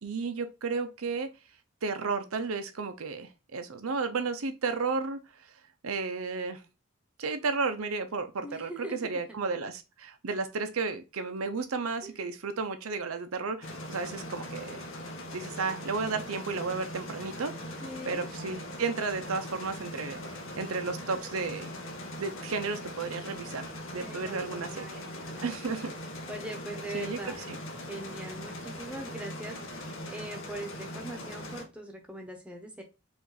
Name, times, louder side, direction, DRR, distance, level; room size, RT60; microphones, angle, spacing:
voice 1, 0.0-1.3 1.8-5.2 5.8-6.6 7.2-14.8 15.3-17.5 18.1-20.2 20.6-21.7 22.2-23.6 23.9-25.0 25.4-25.9 26.9-27.6, right 4 dB, 85° right, 0.7 m, -33 dB
voice 2, 8.4-9.2 12.0-12.1 17.8-18.3 24.0-25.6 26.3-27.4 27.9-32.8, right 1 dB, 5° right, 0.8 m, -41 dB
sound 1, 13.6-31.6, left 1 dB, 70° left, 1.0 m, -41 dB
4.9 x 2.6 x 4.0 m
head